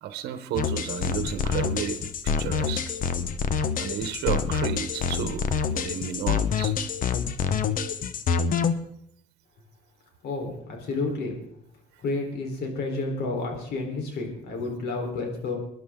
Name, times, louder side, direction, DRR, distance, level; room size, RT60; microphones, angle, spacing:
voice 1, 0.0-2.9 3.8-6.7, right 10 dB, 80° right, 10 dB, 1.2 m, -32 dB
sound 1, 0.6-8.7, left 6 dB, 55° left, 1.0 m, -27 dB
voice 2, 10.2-11.4 12.0-15.6, left 3 dB, 75° left, 2 dB, 4.0 m, -30 dB
22.5 x 11.0 x 3.8 m, 0.73 s
cardioid pair, 110°, 17 cm